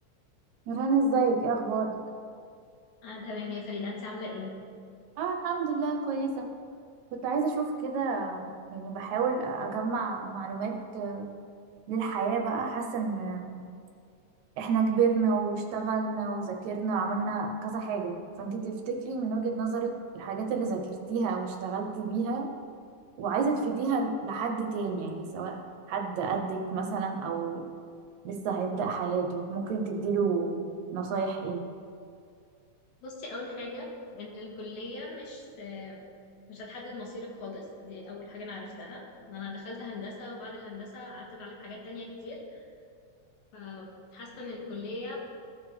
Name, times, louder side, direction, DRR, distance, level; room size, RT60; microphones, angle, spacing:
voice 1, 0.7-2.0 5.2-6.5 7.1-11.3 11.9-13.6 14.6-22.5 23.2-25.6 25.9-27.6 28.2-30.6 30.9-31.6, right 4 dB, 80° right, 3 dB, 2.2 m, -30 dB
voice 2, 3.0-4.5 33.0-36.0 36.5-42.6 43.5-45.2, left 3 dB, 85° left, -2 dB, 2.8 m, -40 dB
14.5 x 4.9 x 3.3 m, 2.3 s
omnidirectional pair, 3.3 m